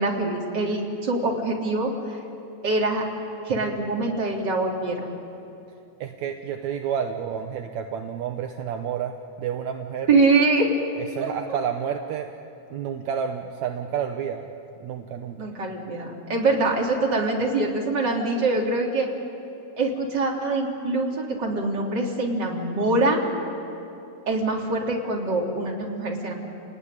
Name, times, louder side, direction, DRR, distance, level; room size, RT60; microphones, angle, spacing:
voice 1, 0.0-2.2 2.6-3.1 3.5-5.0 10.1-10.7 11.2-11.6 15.4-19.1 19.8-23.2 24.3-26.3, right 3 dB, 35° right, -1 dB, 3.7 m, -24 dB
voice 2, 6.0-10.1 11.0-12.3 12.7-14.5 14.8-15.4, right 8 dB, 75° right, 5 dB, 2.2 m, -30 dB
30.0 x 18.5 x 9.9 m, 2.8 s
omnidirectional pair, 3.3 m